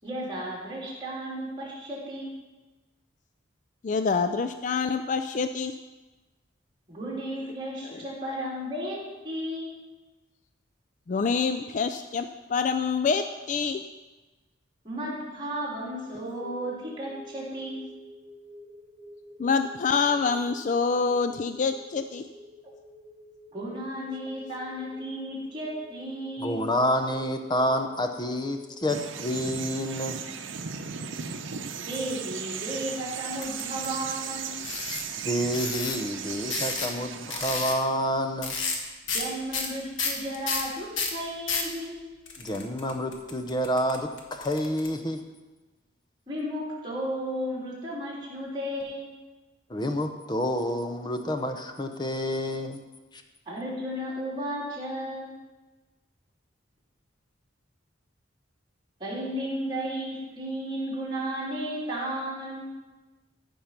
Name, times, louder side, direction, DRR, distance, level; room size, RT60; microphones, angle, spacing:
voice 1, 0.0-2.3 6.9-9.0 9.2-9.7 14.8-17.8 23.5-26.7 31.8-34.6 39.1-41.9 46.3-49.1 53.5-55.3 59.0-62.7, equal, 25° right, -6 dB, 3.6 m, -34 dB
voice 2, 3.8-5.8 7.8-8.0 11.1-13.8 19.4-22.3, left 5 dB, 40° left, 8 dB, 0.3 m, -26 dB
sound 1, 16.0-28.9, left 1 dB, 10° right, 3.9 m, -50 dB
voice 3, 26.4-30.2 35.2-38.5 42.4-45.2 49.7-52.8, equal, 25° left, 6 dB, 0.8 m, -28 dB
sound 2, 28.9-37.6, right 7 dB, 85° right, 0.7 m, -36 dB
sound 3, 33.4-33.9 34.6-35.1 35.5-36.0 36.5-37.0 37.3-37.8 38.4-38.8 39.1-39.3 39.5-41.7 42.3-44.9, left 4 dB, 80° left, 1.5 m, -31 dB
14.5 x 5.4 x 5.9 m, 1.2 s
head